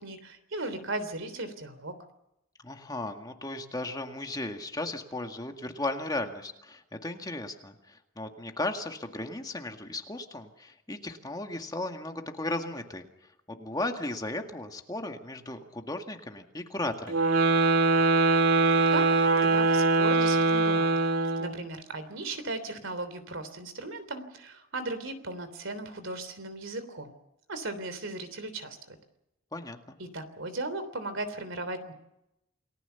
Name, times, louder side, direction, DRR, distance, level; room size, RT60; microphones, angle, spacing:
voice 1, 0.0-2.0 18.7-19.1 19.5-20.9 21.4-27.2 27.5-29.0 30.0-31.9, right 2 dB, 65° right, 11 dB, 3.3 m, -37 dB
voice 2, 2.6-13.1 13.5-17.3 29.5-30.0, left 2 dB, 20° left, 4 dB, 1.9 m, -36 dB
sound 1, 17.1-21.6, right 3 dB, 85° right, 2.3 m, -23 dB
29.0 x 19.0 x 7.0 m, 0.86 s
head